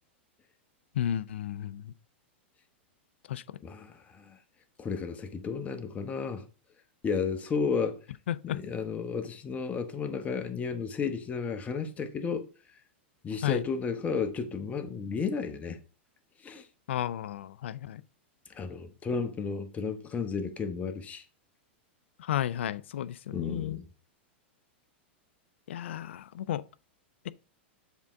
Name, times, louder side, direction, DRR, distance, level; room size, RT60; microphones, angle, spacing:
voice 1, 1.0-1.9 3.3-3.4 8.3-8.6 13.4-13.6 16.9-18.0 22.2-23.8 25.7-26.6, left 11 dB, 80° left, 0.4 m, -33 dB
voice 2, 3.6-4.4 4.8-6.5 7.0-8.0 8.4-12.5 13.2-15.8 16.4-16.7 18.5-21.2 23.3-23.9, left 5 dB, 25° left, 1.0 m, -33 dB
7.3 x 3.7 x 4.6 m
hypercardioid pair, 120°, 6 cm